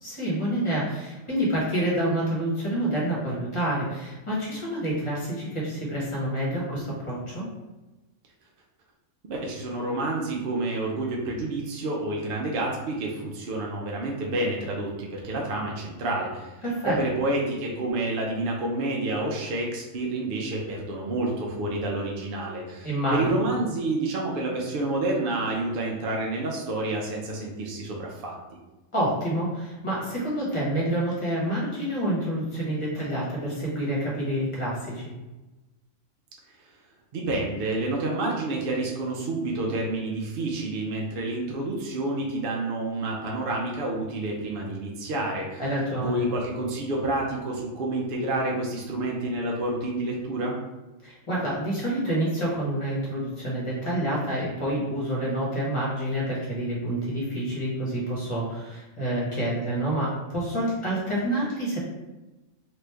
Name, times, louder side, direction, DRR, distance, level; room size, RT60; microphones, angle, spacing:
voice 1, 0.0-7.5 16.6-16.9 22.8-23.2 28.9-35.0 45.6-46.2 51.0-61.8, right 1 dB, 25° left, -6 dB, 1.0 m, -28 dB
voice 2, 9.3-28.3 37.1-45.6 46.0-50.6, right 2 dB, 60° right, -1 dB, 0.6 m, -29 dB
3.0 x 2.5 x 3.3 m, 1.1 s
omnidirectional pair, 1.4 m